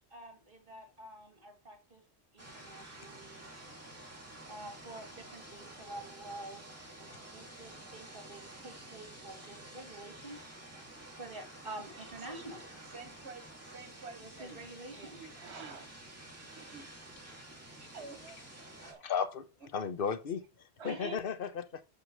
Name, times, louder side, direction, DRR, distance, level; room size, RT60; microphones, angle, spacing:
voice 1, 0.1-2.0 2.3-3.5 3.9-4.0 4.5-6.6 7.0-10.4 10.7-10.9 11.2-12.6 14.2-15.2 20.8-21.2, right 2 dB, 55° right, 2.6 m, -48 dB
sound 1, 2.4-18.9, right 1 dB, 15° right, 2.4 m, -50 dB
voice 2, 12.8-14.6 14.9-15.9 16.6-16.9 17.8-19.1 19.6-19.7 20.8-21.2, right 4 dB, 75° right, 1.6 m, -50 dB
voice 3, 19.0-19.5 19.7-20.4 20.8-21.8, left 6 dB, 55° left, 1.1 m, -34 dB
6.4 x 5.9 x 6.2 m
omnidirectional pair, 1.1 m